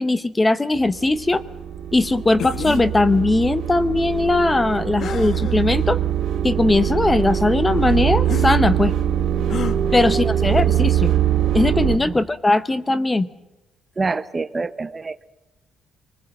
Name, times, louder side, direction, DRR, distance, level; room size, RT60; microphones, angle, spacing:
voice 1, 0.0-1.4 1.9-6.0 6.4-8.9 9.9-11.1 11.5-13.3, left 2 dB, 15° left, 14 dB, 0.8 m, -19 dB
sound 1, 0.8-12.0, right 10 dB, 65° right, 3.7 m, -22 dB
sound 2, 2.4-2.9 5.0-5.6 6.3-6.4 8.3-8.5 9.5-9.8, left 7 dB, 50° left, 1.2 m, -29 dB
voice 2, 14.0-15.3, right 3 dB, 20° right, 14 dB, 0.8 m, -26 dB
25.0 x 20.0 x 7.8 m, 0.98 s
cardioid pair, 145°, 0 cm